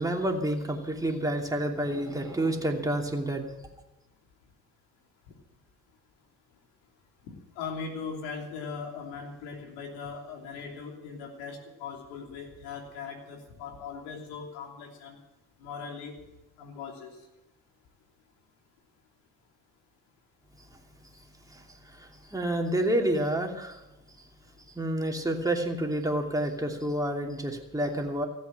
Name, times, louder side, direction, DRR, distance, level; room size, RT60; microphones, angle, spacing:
voice 1, 0.0-3.5 21.5-23.8 24.7-28.3, right 1 dB, 10° right, 1 dB, 2.8 m, -29 dB
voice 2, 7.3-15.2 15.6-16.2 16.6-17.1, left 5 dB, 75° left, 1 dB, 3.3 m, -39 dB
15.5 x 8.3 x 9.1 m, 1.0 s
hypercardioid pair, 60°, 46 cm